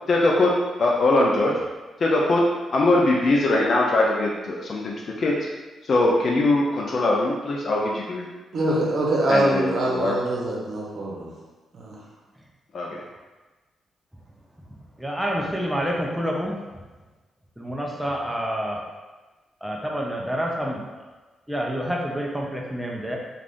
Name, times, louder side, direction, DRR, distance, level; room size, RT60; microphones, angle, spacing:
voice 1, 0.1-0.5 0.8-1.5 2.0-2.4 2.7-5.3 5.8-8.3 9.3-10.2 12.7-13.0, left 2 dB, 50° left, -3 dB, 0.4 m, -21 dB
voice 2, 8.5-11.3 11.7-12.0, right 1 dB, 60° right, -4 dB, 0.8 m, -24 dB
voice 3, 15.0-16.6 17.6-18.8 19.6-21.1 21.5-23.2, equal, 5° right, -2 dB, 0.6 m, -28 dB
2.5 x 2.4 x 3.5 m, 1.2 s
cardioid pair, 90°, 0 cm